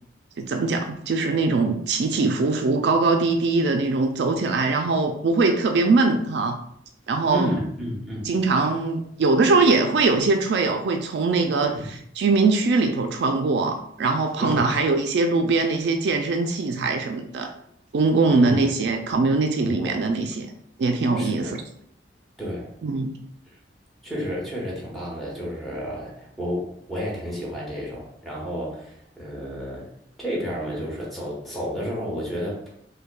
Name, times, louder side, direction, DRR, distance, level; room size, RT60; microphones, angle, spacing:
voice 1, 0.4-6.6 7.1-7.5 8.2-11.7 12.2-17.5 17.9-20.5 20.8-21.6 22.8-23.1, right 3 dB, 65° right, 4 dB, 0.3 m, -22 dB
voice 2, 7.3-8.3 11.6-11.9 14.4-14.7 18.3-18.7 19.6-20.1 21.1-21.6 22.4-22.7 24.0-29.9 30.2-32.6, equal, ahead, -5 dB, 1.0 m, -31 dB
5.3 x 2.1 x 2.2 m, 0.70 s
head